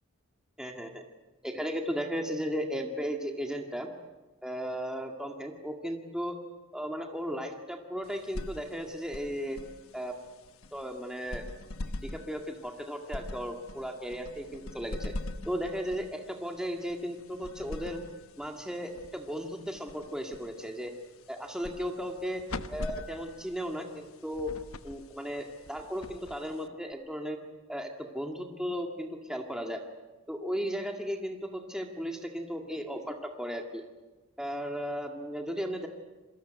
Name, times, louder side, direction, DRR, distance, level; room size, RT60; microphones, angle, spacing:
voice 1, 0.6-1.0 1.4-3.9 4.4-6.4 6.7-9.6 9.9-10.2 10.7-11.4 12.1-15.1 15.5-18.0 18.4-20.9 21.3-22.4 22.7-24.5 24.8-27.4 27.7-29.8 30.3-33.8 34.4-35.9, equal, 5° right, 2 dB, 1.9 m, -35 dB
sound 1, 8.0-26.9, left 2 dB, 80° left, 1.1 m, -44 dB
27.5 x 22.0 x 8.0 m, 1.2 s
head